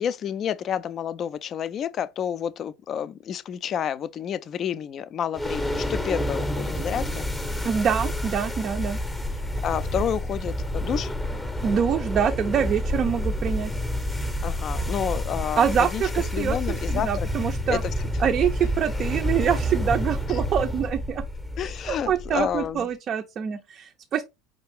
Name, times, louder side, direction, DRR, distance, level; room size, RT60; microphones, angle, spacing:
voice 1, 0.0-7.2 9.3-11.1 14.4-16.0 16.3-17.3 17.7-17.9 20.3-20.4 21.6-22.9, left 9 dB, 40° left, 0.3 m, -30 dB
sound 1, 5.3-22.7, equal, 10° left, 0.7 m, -29 dB
voice 2, 7.6-9.0 11.6-13.7 15.6-16.6 16.9-17.8 18.2-21.2 21.9-24.2, right 8 dB, 40° right, 0.4 m, -25 dB
5.3 x 2.4 x 3.4 m
figure-of-eight pair, 70°, 0 cm